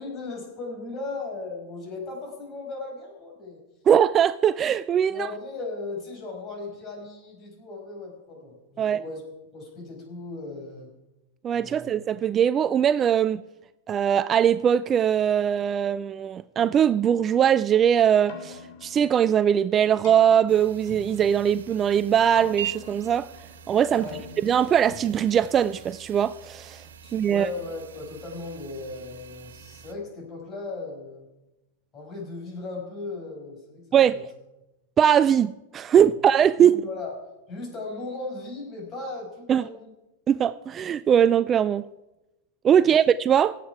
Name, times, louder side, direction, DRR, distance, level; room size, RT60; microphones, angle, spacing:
voice 1, 0.0-3.6 5.1-9.2 9.5-10.9 11.5-11.9 23.9-24.2 27.0-31.3 31.9-34.2 35.9-36.1 36.6-37.2 37.5-39.9 42.8-42.9, left 3 dB, 30° left, 5.6 m, -37 dB
voice 2, 3.9-5.3 8.8-9.0 11.4-13.4 13.9-23.3 23.7-24.0 24.4-26.8 27.1-27.5 33.9-34.2 35.0-36.8 39.5-39.7 40.3-41.8 42.6-43.6, right 9 dB, 25° right, 0.3 m, -21 dB
Keyboard (musical), 18.1-26.3, left 5 dB, 60° left, 3.6 m, -47 dB
sound 1, 20.5-29.9, right 10 dB, 85° right, 1.1 m, -43 dB
18.5 x 8.2 x 4.8 m
hypercardioid pair, 125°, 0 cm